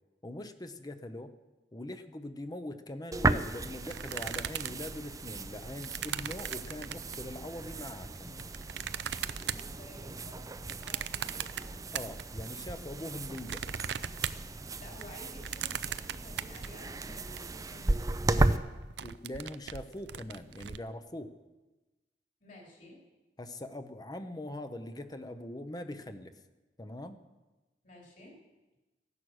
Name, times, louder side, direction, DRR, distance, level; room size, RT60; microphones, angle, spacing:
voice 1, 0.2-1.3 1.7-8.5 11.9-13.8 19.0-21.3 23.4-26.3 26.8-27.2, left 1 dB, 20° left, 9 dB, 0.7 m, -42 dB
sound 1, 3.1-18.6, right 2 dB, 20° right, 0.5 m, -35 dB
sound 2, 3.9-7.3 8.0-12.5 12.9-17.4 17.8-17.9 18.1-18.4 18.7-20.8, right 9 dB, 75° right, 0.5 m, -39 dB
voice 2, 9.3-11.7 14.5-18.0 18.3-18.8 22.4-23.0 27.8-28.4, left 1 dB, 50° left, -2 dB, 4.0 m, -53 dB
15.0 x 11.0 x 6.4 m, 1.1 s
head